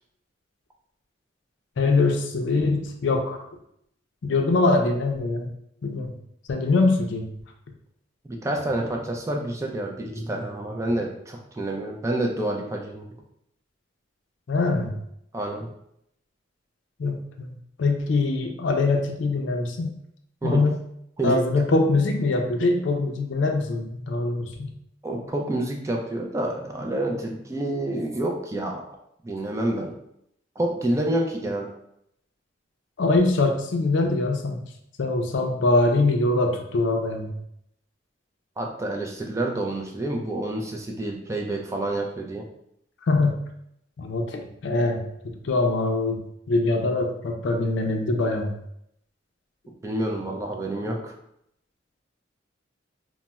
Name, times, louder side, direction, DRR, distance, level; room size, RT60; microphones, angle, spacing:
voice 1, 1.8-3.4 4.2-5.5 5.8-6.1 6.5-7.3 14.5-15.0 17.0-20.0 20.4-20.8 21.2-24.7 33.0-34.6 35.0-37.3 43.1-43.4 44.0-46.2 46.5-48.6, left 2 dB, 70° left, 3 dB, 0.4 m, -23 dB
voice 2, 8.3-13.1 15.3-15.7 20.4-20.6 21.2-21.3 25.0-28.8 29.2-30.0 30.6-31.7 38.6-42.5 49.8-51.1, right 1 dB, 15° right, 1 dB, 0.3 m, -28 dB
3.9 x 2.0 x 2.2 m, 0.75 s
head